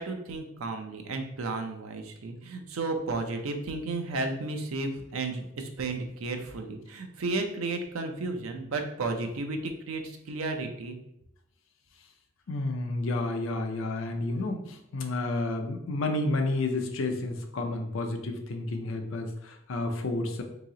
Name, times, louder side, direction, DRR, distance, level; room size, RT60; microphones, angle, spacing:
voice 1, 0.0-11.0, right 3 dB, 85° right, 5 dB, 0.5 m, -33 dB
voice 2, 12.5-20.4, left 2 dB, 70° left, 4 dB, 0.5 m, -31 dB
2.9 x 2.8 x 3.7 m, 0.81 s
head